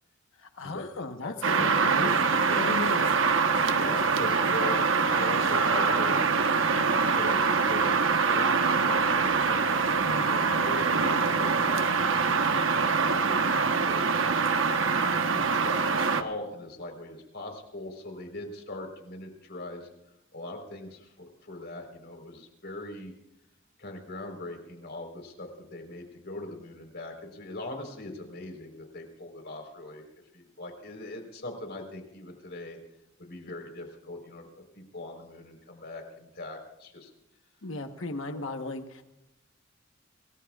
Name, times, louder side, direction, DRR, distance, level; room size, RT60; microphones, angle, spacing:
voice 1, 0.4-2.1 2.5-3.1 10.0-10.3 37.6-39.0, left 2 dB, 75° left, 6 dB, 1.2 m, -36 dB
voice 2, 1.2-1.7 2.4-3.0 3.7-4.8 5.1-6.8 7.1-9.4 10.1-12.4 12.7-14.7 15.0-19.9 20.3-23.1 23.8-30.1 30.3-32.8 33.2-34.5 34.7-37.1 38.3-38.4, left 2 dB, 55° left, 4 dB, 4.2 m, -41 dB
sound 1, 1.4-16.2, right 5 dB, 70° right, 1.2 m, -24 dB
27.0 x 19.5 x 2.4 m, 0.90 s
head